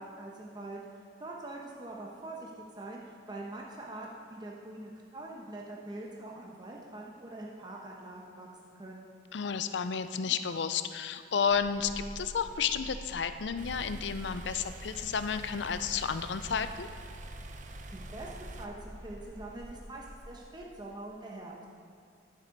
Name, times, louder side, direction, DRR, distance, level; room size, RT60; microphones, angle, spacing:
voice 1, 0.0-9.1 17.9-21.7, right 2 dB, 25° right, -2 dB, 1.0 m, -44 dB
voice 2, 9.3-16.9, left 6 dB, 70° left, 11 dB, 0.5 m, -32 dB
sound 1, 11.4-20.6, equal, 15° left, 1.7 m, -47 dB
sound 2, 13.6-18.6, right 3 dB, 45° right, 0.7 m, -48 dB
11.5 x 7.6 x 5.2 m, 2.5 s
head